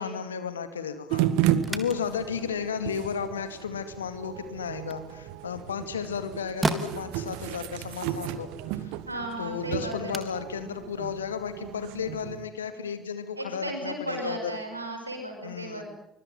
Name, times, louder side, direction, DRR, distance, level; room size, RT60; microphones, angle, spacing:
voice 1, 0.0-8.9 9.4-14.5 15.4-15.8, left 7 dB, 80° left, 11 dB, 2.3 m, -34 dB
sound 1, 1.1-12.4, right 12 dB, 65° right, 1.7 m, -33 dB
sound 2, 1.5-12.0, right 3 dB, 20° right, 3.3 m, -39 dB
voice 2, 9.1-10.2 13.4-15.8, right 2 dB, 90° right, 4 dB, 5.5 m, -35 dB
24.5 x 23.0 x 9.4 m, 0.79 s
figure-of-eight pair, 55°, 0 cm